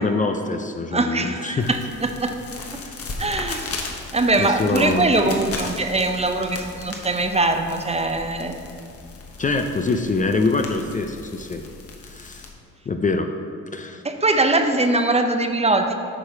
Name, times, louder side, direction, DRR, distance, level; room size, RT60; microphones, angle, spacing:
voice 1, 0.0-1.7 4.4-5.4 9.4-11.7 12.0-12.5 12.9-13.3 13.7-14.0, left 3 dB, 25° left, 5 dB, 0.5 m, -24 dB
voice 2, 0.9-2.3 3.2-3.7 4.1-8.6 14.0-15.9, right 2 dB, 20° right, 6 dB, 0.7 m, -22 dB
sound 1, 1.6-12.5, left 3 dB, 50° left, 1.3 m, -37 dB
8.9 x 4.8 x 5.7 m, 2.4 s
cardioid pair, 90°, 30 cm